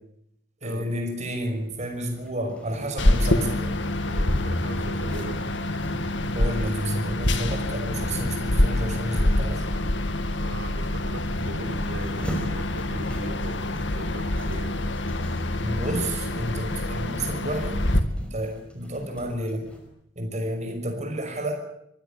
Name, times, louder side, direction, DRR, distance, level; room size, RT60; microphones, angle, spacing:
voice 1, 0.6-3.8 6.3-9.7 15.6-17.8 18.2-19.7 20.2-21.5, right 1 dB, 40° right, 4 dB, 5.7 m, -31 dB
Zipper (clothing), 1.3-19.9, equal, 5° left, 5.1 m, -44 dB
sound 1, 3.0-18.0, left 1 dB, 80° left, 2.2 m, -26 dB
voice 2, 4.0-5.4 10.4-14.8, right 1 dB, 90° right, 6 dB, 3.7 m, -40 dB
25.0 x 16.5 x 8.7 m, 0.74 s
head